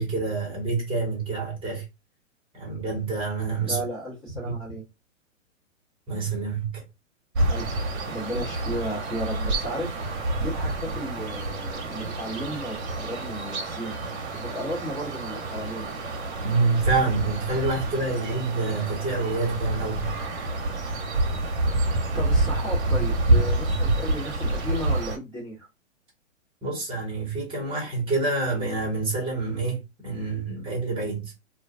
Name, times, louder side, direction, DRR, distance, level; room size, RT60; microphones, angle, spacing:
voice 1, 0.0-1.8 2.5-3.8 4.5-4.6 6.1-6.8 16.4-20.1 26.6-31.3, right 3 dB, 15° right, 1.1 m, -27 dB
voice 2, 3.7-4.8 7.5-7.7 8.1-9.9 10.4-14.0 14.4-15.9 21.8-25.7, equal, 20° left, 1.1 m, -34 dB
sound 1, 7.3-25.2, right 2 dB, 55° right, 0.9 m, -27 dB
2.4 x 2.3 x 2.4 m
figure-of-eight pair, 125°, 40 cm